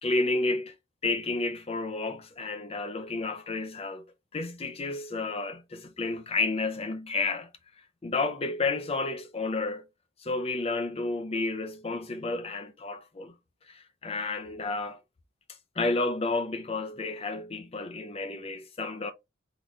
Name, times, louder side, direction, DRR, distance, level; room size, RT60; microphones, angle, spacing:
voice 1, 0.0-0.7 1.0-4.1 4.3-7.5 8.0-9.8 10.2-13.3 13.7-15.0 15.8-19.1, left 3 dB, 30° left, 0.6 m, -31 dB
3.9 x 2.5 x 3.1 m
head